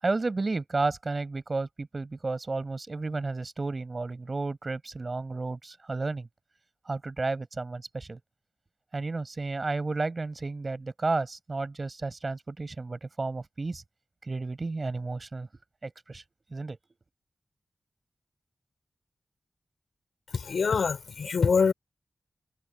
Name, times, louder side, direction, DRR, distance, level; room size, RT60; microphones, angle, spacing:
voice 1, 0.0-6.3 6.9-8.2 8.9-13.8 14.2-15.5 15.8-16.2 16.5-16.8, right 3 dB, 35° right, 6.2 m, -32 dB
voice 2, 20.5-21.7, left 5 dB, 90° left, 4.1 m, -24 dB
wide cardioid pair, 135°, 0 cm